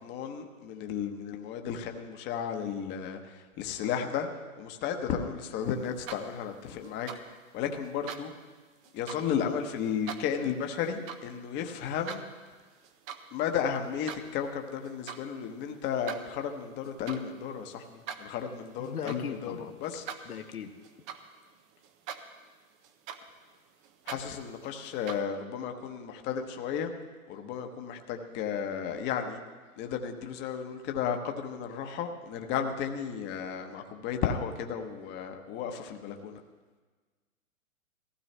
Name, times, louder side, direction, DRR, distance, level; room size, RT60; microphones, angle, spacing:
voice 1, 0.0-4.3 4.6-8.3 8.9-12.2 13.3-20.0 24.1-26.9 27.3-29.4 29.8-36.4, left 7 dB, 25° left, 5 dB, 1.1 m, -34 dB
sound 1, 5.8-6.5 6.8-7.2 7.8-8.2 8.8-9.2 9.8-10.2 10.8-11.2 11.6-12.2 12.7-13.3 13.6-14.2 14.8-15.2 15.8-21.6 21.8-22.5 22.8-25.2, right 8 dB, 15° right, 0.5 m, -43 dB
voice 2, 18.8-19.8 20.3-20.7, left 8 dB, 85° left, 6 dB, 1.2 m, -38 dB
18.0 x 15.5 x 3.3 m, 1.4 s
hypercardioid pair, 130°, 43 cm